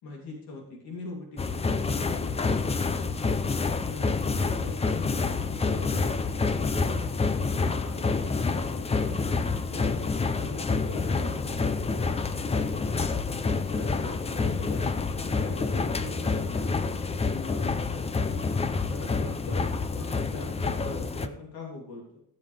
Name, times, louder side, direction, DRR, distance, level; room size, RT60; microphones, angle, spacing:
voice 1, 0.0-2.7 3.7-4.1 4.4-6.9 7.3-9.2 9.6-10.0 10.3-11.8 12.4-12.8 13.5-16.7 17.3-17.7 18.1-22.2, left 2 dB, 80° left, -1 dB, 3.2 m, -42 dB
sound 1, 1.4-21.3, left 4 dB, 20° left, 0.5 m, -28 dB
16.0 x 7.4 x 3.4 m, 0.72 s
cardioid pair, 170°, 36 cm